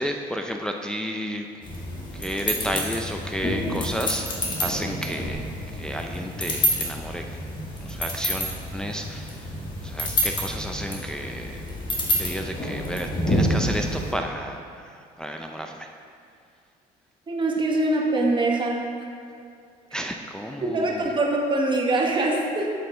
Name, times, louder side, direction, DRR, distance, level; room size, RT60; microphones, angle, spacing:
voice 1, 0.0-1.5 2.1-5.5 5.7-7.2 7.8-9.5 9.8-11.7 12.2-15.9 19.9-21.0, equal, 5° left, 3 dB, 0.4 m, -32 dB
sound 1, 1.6-14.1, equal, 30° left, 1.7 m, -28 dB
voice 2, 17.3-18.9 20.6-22.7, right 2 dB, 30° right, 0 dB, 1.3 m, -23 dB
7.7 x 7.6 x 3.8 m, 2.4 s
cardioid pair, 110°, 17 cm